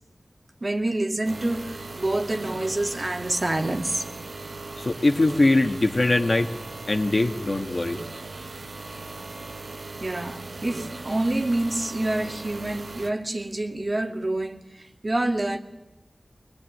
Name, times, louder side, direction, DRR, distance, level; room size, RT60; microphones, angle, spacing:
voice 1, 0.6-4.1 10.0-15.6, right 1 dB, 45° right, 2.2 m, -27 dB
sound 1, 1.2-13.1, right 3 dB, 80° right, 1.7 m, -38 dB
voice 2, 4.8-6.5 6.9-8.0, left 2 dB, 50° left, 1.9 m, -22 dB
24.5 x 20.5 x 9.4 m
wide cardioid pair, 75°, 0 cm